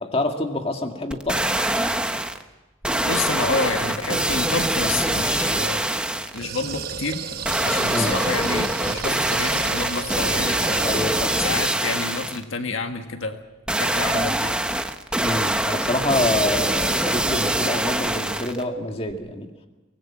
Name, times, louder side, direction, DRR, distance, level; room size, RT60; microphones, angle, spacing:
voice 1, 0.0-1.5 7.9-8.2 10.8-11.5 15.2-19.5, left 2 dB, 30° left, 4 dB, 2.1 m, -26 dB
sound 1, 1.1-2.4 2.8-6.4 7.4-12.4 13.7-18.6 19.1-19.2, right 1 dB, 5° right, 0.9 m, -24 dB
voice 2, 3.0-5.8 6.3-7.2 7.6-10.9 11.4-13.4 13.8-14.6, left 3 dB, 75° left, 6 dB, 1.6 m, -29 dB
sound 2, 6.3-11.7, right 5 dB, 50° right, 1.1 m, -34 dB
24.0 x 19.0 x 7.4 m, 1.1 s
head